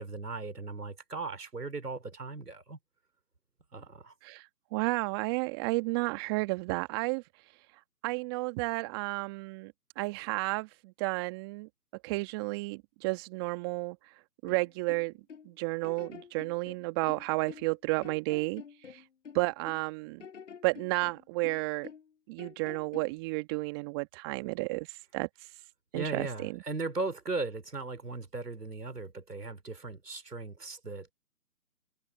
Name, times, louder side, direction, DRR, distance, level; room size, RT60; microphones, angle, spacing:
voice 1, 0.0-2.8 3.7-4.1 25.9-31.1, right 3 dB, 85° right, 3.5 m, -37 dB
voice 2, 4.2-7.2 8.0-11.7 12.0-14.0 14.4-15.1 15.4-19.0 19.3-20.2 20.6-21.9 22.3-25.3 25.9-26.6, right 26 dB, 15° right, 1.6 m, -32 dB
sound 1, 14.5-15.5 15.8-17.8 18.0-19.9 20.2-22.1 22.4-23.2, left 7 dB, 50° left, 4.9 m, -48 dB
figure-of-eight pair, 145°, 46 cm